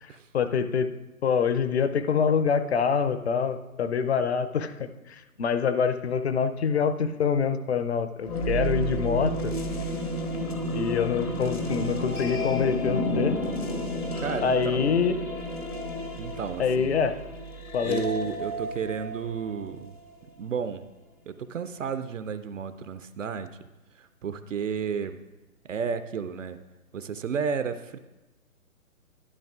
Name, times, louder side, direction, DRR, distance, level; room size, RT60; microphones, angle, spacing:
voice 1, 0.0-0.9 1.2-9.5 10.7-13.4 14.4-15.2 16.6-17.2 17.7-18.1, left 6 dB, 50° left, 10 dB, 0.6 m, -25 dB
sound 1, 8.2-20.1, equal, 85° left, 1.4 m, -31 dB
voice 2, 14.2-14.9 16.2-16.9 17.8-19.9 20.4-20.8 21.3-23.5 24.0-25.2 25.7-26.6 26.9-28.0, right 6 dB, 60° right, 11 dB, 0.5 m, -32 dB
12.0 x 10.0 x 2.4 m, 1.1 s
figure-of-eight pair, 135°, 43 cm